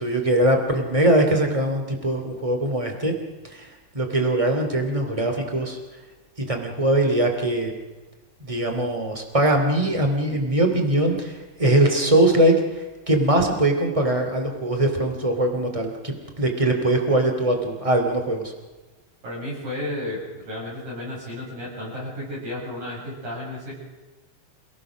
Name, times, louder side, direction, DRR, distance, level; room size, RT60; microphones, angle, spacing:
voice 1, 0.0-3.1 3.4-3.7 3.9-5.8 6.5-7.7 8.4-18.5, right 1 dB, 10° right, 4 dB, 1.8 m, -21 dB
voice 2, 19.2-23.7, left 1 dB, 50° right, -5 dB, 8.9 m, -33 dB
28.0 x 17.0 x 6.3 m, 1.2 s
omnidirectional pair, 4.9 m